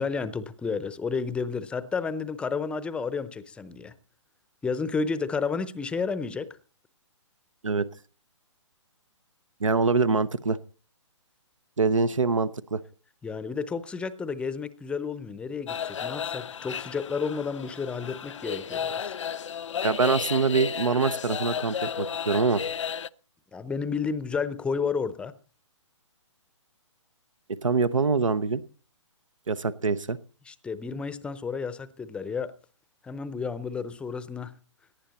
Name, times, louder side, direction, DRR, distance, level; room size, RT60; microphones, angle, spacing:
voice 1, 0.0-3.9 4.6-6.5 13.2-19.2 23.5-25.3 30.5-32.5 33.0-34.5, left 5 dB, 5° left, 15 dB, 0.6 m, -31 dB
voice 2, 9.6-10.6 11.8-12.8 19.8-22.6 27.5-28.6 29.5-30.2, right 4 dB, 90° right, 14 dB, 0.8 m, -24 dB
sound 1, 15.7-23.1, left 8 dB, 70° left, 0.6 m, -33 dB
18.0 x 10.5 x 4.2 m, 0.38 s
hypercardioid pair, 140°, 16 cm